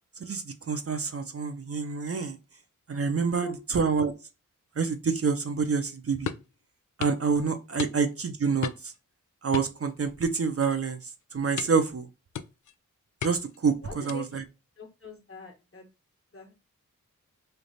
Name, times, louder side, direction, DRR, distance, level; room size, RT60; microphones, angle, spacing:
voice 1, 0.2-2.4 2.9-3.5 3.7-4.1 4.8-6.3 7.0-8.9 9.4-11.0 11.3-12.1 13.2-13.7 14.0-14.4, right 5 dB, 45° right, 6 dB, 0.6 m, -27 dB
sound 1, 6.3-6.5 7.0-7.2 7.8-8.2 8.6-9.0 9.5-10.3 10.6-10.9 11.6-11.9 12.3-12.7 13.2-13.6 14.1-14.4, left 8 dB, 65° left, 0.4 m, -36 dB
voice 2, 13.8-14.2 14.8-15.9 16.3-16.5, left 2 dB, 40° left, 3 dB, 1.4 m, -42 dB
3.2 x 2.5 x 4.0 m, 0.28 s
cardioid pair, 45°, 32 cm